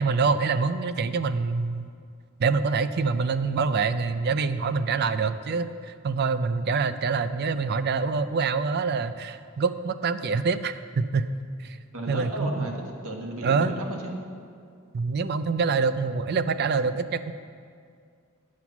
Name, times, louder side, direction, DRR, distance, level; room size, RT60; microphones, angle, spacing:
voice 1, 0.0-1.9 2.4-11.3 11.6-11.8 12.1-12.7 13.4-13.7 14.9-17.3, right 4 dB, 50° right, 12 dB, 0.4 m, -25 dB
voice 2, 11.9-14.1, right 1 dB, 80° right, 1 dB, 1.4 m, -34 dB
9.5 x 7.2 x 5.9 m, 2.2 s
head